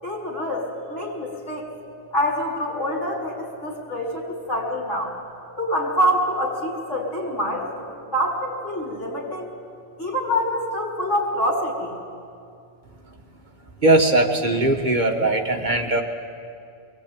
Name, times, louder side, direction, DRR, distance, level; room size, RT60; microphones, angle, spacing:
voice 1, 0.0-1.6 2.1-5.1 5.6-9.5 10.0-11.9, equal, 80° left, -3 dB, 4.8 m, -26 dB
voice 2, 13.8-16.0, right 2 dB, 40° right, 3 dB, 1.5 m, -19 dB
22.5 x 18.5 x 8.9 m, 2.4 s
omnidirectional pair, 1.2 m